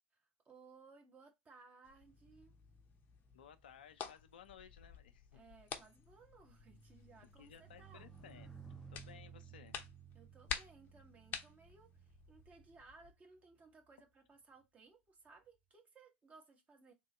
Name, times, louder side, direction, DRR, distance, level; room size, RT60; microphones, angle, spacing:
voice 1, 0.1-2.6 5.3-8.1 10.1-16.9, right 4 dB, 25° right, 1.3 m, -62 dB
sound 1, 1.8-13.1, left 7 dB, 40° left, 0.8 m, -51 dB
sound 2, 2.0-13.6 14.4-14.6, right 6 dB, 5° left, 0.7 m, -59 dB
voice 2, 3.3-5.4 7.4-8.5 8.9-9.9, left 8 dB, 70° left, 0.6 m, -58 dB
3.7 x 2.7 x 4.3 m
figure-of-eight pair, 75°, 5 cm